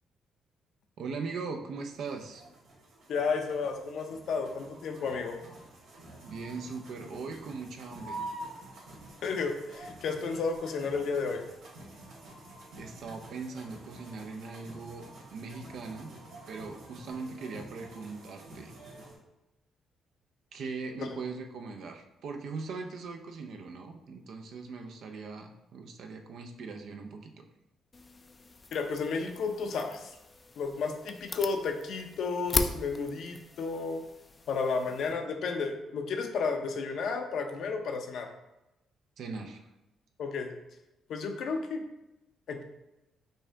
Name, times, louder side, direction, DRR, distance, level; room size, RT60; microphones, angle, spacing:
voice 1, 1.0-2.4 6.2-8.2 12.8-15.1 15.3-16.1 16.5-18.7 20.5-27.4 39.2-39.7, right 4 dB, 70° right, 4 dB, 0.6 m, -40 dB
sound 1, 1.8-19.2, right 2 dB, 85° right, 1.5 m, -48 dB
voice 2, 3.1-5.4 9.2-11.5 21.0-21.1 28.7-30.2 30.6-34.0 34.5-38.3 40.2-40.5 41.1-41.8 42.5-42.6, left 4 dB, 70° left, 4 dB, 0.6 m, -32 dB
sound 2, 27.9-35.1, left 3 dB, 25° left, 0.4 m, -39 dB
5.3 x 2.8 x 3.4 m, 0.93 s
cardioid pair, 90°, 0 cm